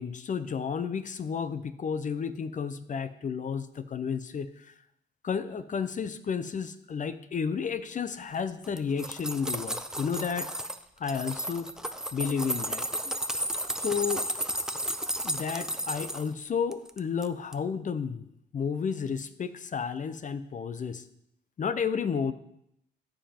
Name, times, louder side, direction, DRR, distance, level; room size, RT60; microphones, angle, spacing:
voice 1, 0.0-4.7 5.2-10.5 11.0-11.7 12.1-13.1 13.8-14.3 15.2-18.3 18.5-21.0 21.6-22.3, left 6 dB, 40° left, 13 dB, 0.6 m, -32 dB
sound 1, 8.6-10.8 11.1-16.3 16.7-17.3 17.5-17.6, right 1 dB, 5° right, 0.6 m, -33 dB
14.0 x 5.3 x 4.4 m, 0.77 s
cardioid pair, 90°, 20 cm